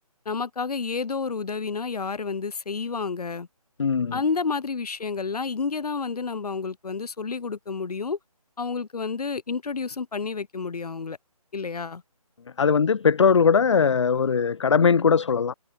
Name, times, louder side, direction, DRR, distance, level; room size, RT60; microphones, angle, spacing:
voice 1, 0.3-3.5 4.1-8.2 8.6-11.2 11.5-12.0, left 5 dB, 85° left, 0.8 m, -30 dB
voice 2, 3.8-4.2 12.6-15.5, left 6 dB, 50° left, 0.6 m, -20 dB
figure-of-eight pair, 170°, 19 cm